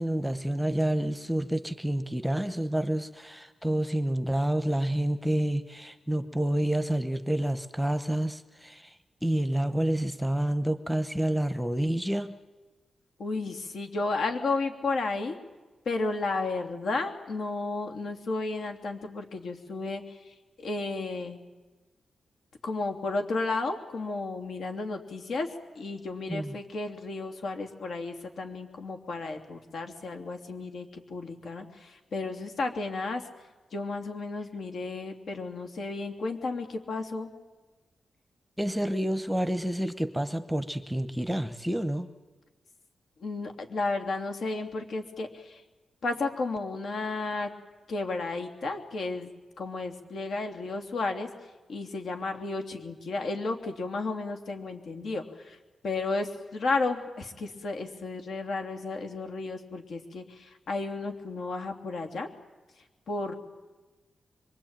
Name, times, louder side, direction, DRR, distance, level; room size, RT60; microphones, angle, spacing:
voice 1, 0.0-9.0 9.2-12.4 26.3-26.5 38.6-42.1, right 1 dB, ahead, 10 dB, 1.0 m, -28 dB
voice 2, 13.2-15.4 15.8-21.4 22.6-33.2 33.7-37.3 43.2-45.6 46.0-47.5 47.9-49.3 49.6-51.3 51.7-55.6 55.8-62.3 63.1-63.3, left 3 dB, 70° left, 4 dB, 3.0 m, -33 dB
25.5 x 23.5 x 9.0 m, 1.2 s
wide cardioid pair, 145°, 0 cm